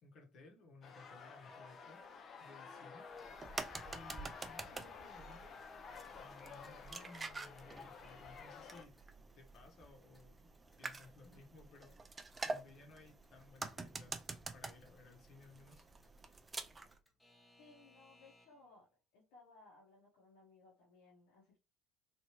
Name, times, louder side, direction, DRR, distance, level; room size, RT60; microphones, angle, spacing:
voice 1, 0.0-3.1 3.9-5.6 6.1-9.0 9.3-10.5 10.8-11.9 12.4-14.2 14.5-15.8, left 2 dB, 55° left, 1.1 m, -59 dB
sound 1, 0.8-8.8, left 5 dB, 40° left, 0.6 m, -52 dB
sound 2, 3.1-17.0, right 3 dB, 20° right, 0.4 m, -48 dB
Alarm / Clock, 6.6-18.8, left 1 dB, 5° left, 0.9 m, -73 dB
voice 2, 17.6-18.9 19.1-21.6, left 3 dB, 80° left, 1.2 m, -62 dB
3.3 x 2.7 x 2.9 m
supercardioid pair, 100°, 0 cm